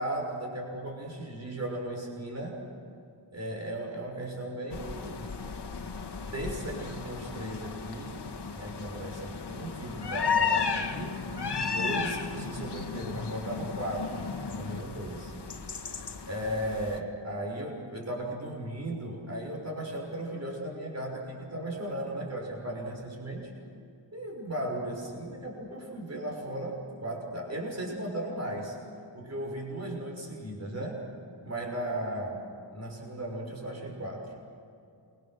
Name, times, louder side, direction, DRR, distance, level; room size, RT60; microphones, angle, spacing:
voice 1, 0.0-2.6 3.3-5.4 6.3-8.2 8.5-11.2 11.6-15.3 16.3-23.5 24.1-28.8 29.1-31.0 31.4-34.3, right 1 dB, 35° right, -1 dB, 6.2 m, -36 dB
sound 1, 4.7-17.0, left 5 dB, 60° left, 1.8 m, -34 dB
28.5 x 24.0 x 6.6 m, 2.6 s
wide cardioid pair, 135°, 45 cm